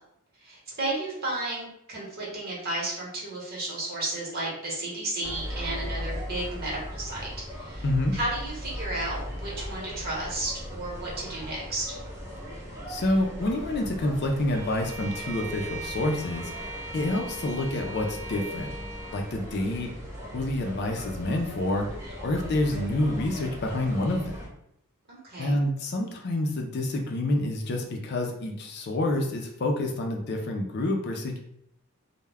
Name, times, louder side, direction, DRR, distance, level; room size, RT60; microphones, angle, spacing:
voice 1, 0.4-7.8 8.1-12.0 25.1-25.6, right 2 dB, 45° right, -5 dB, 1.0 m, -33 dB
sound 1, 5.2-24.5, equal, 15° right, 0.7 m, -38 dB
voice 2, 7.8-8.2 12.9-18.7 19.1-19.9 20.3-21.9 22.2-24.4 25.4-31.4, left 1 dB, 50° left, 2 dB, 0.4 m, -28 dB
Bowed string instrument, 14.5-19.4, right 2 dB, 70° right, 0.4 m, -40 dB
2.2 x 2.1 x 3.3 m, 0.76 s
head